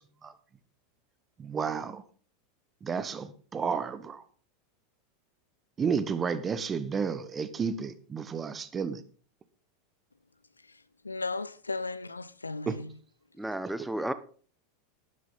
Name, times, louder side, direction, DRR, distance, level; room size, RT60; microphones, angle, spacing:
voice 1, 1.4-2.0 2.8-4.2 5.8-9.0 12.7-12.8, right 6 dB, 25° right, 1.3 m, -31 dB
voice 2, 10.6-13.0, left 3 dB, 80° left, 0.5 m, -36 dB
voice 3, 13.4-14.1, right 1 dB, 5° right, 1.0 m, -32 dB
12.0 x 11.5 x 4.1 m
figure-of-eight pair, 85°, 0 cm